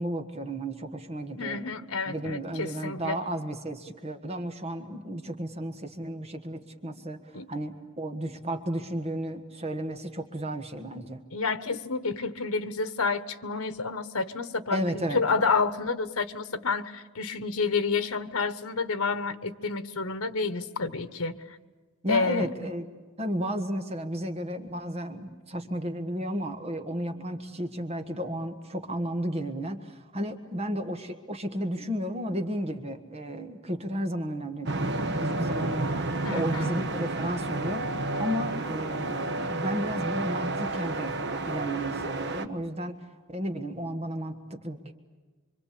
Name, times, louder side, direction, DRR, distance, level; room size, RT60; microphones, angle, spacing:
voice 1, 0.0-1.7 2.0-11.2 14.7-15.2 22.0-22.9 23.2-41.2 41.5-44.9, equal, 30° right, 6 dB, 1.6 m, -33 dB
voice 2, 1.4-3.2 7.3-7.5 11.3-21.6 22.1-22.5 36.2-36.7, left 4 dB, 85° left, 13 dB, 1.3 m, -29 dB
sound 1, 34.7-42.5, right 2 dB, 50° right, 1.2 m, -31 dB
26.0 x 25.0 x 8.5 m, 1.3 s
head